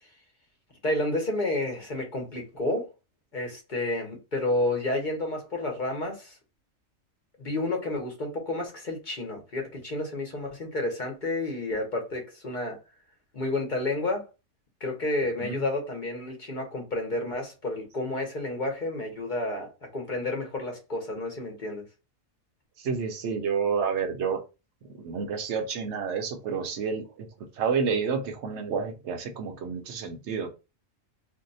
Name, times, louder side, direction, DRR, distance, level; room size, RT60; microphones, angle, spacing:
voice 1, 0.8-2.9 3.3-6.4 7.4-12.8 13.3-14.3 14.8-21.9, left 2 dB, 45° left, 0.8 m, -30 dB
voice 2, 22.8-24.4 25.0-27.3 27.5-30.5, right 6 dB, 65° right, 0.9 m, -29 dB
2.6 x 2.1 x 3.9 m
omnidirectional pair, 1.4 m